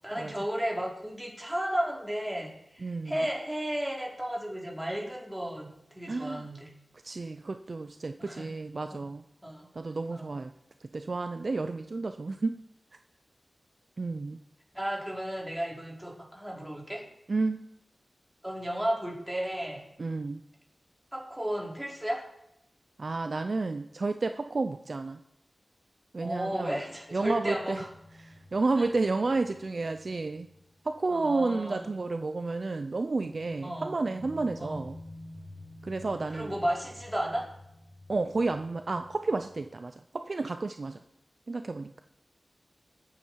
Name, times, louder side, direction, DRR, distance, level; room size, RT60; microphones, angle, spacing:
voice 1, 0.0-6.7 8.2-8.5 8.9-9.0 9.4-9.7 10.1-10.3 14.7-17.0 18.4-19.8 21.1-22.3 26.2-27.9 28.8-28.9 31.1-31.9 33.6-34.0 34.6-34.8 36.3-37.4, equal, 5° right, -2 dB, 4.1 m, -33 dB
voice 2, 2.8-3.2 6.1-6.4 7.0-9.2 9.7-10.5 10.8-12.6 14.0-14.4 17.3-17.7 20.0-20.4 23.0-25.2 26.1-26.8 27.1-27.8 28.2-30.5 30.8-35.0 35.8-36.5 38.1-41.0 41.5-42.0, right 3 dB, 50° right, 8 dB, 0.6 m, -31 dB
sound 1, 26.2-31.6 31.9-32.0 33.2-39.8, left 1 dB, 55° left, 4.4 m, -50 dB
20.5 x 8.8 x 4.7 m, 0.81 s
wide cardioid pair, 90°, 0 cm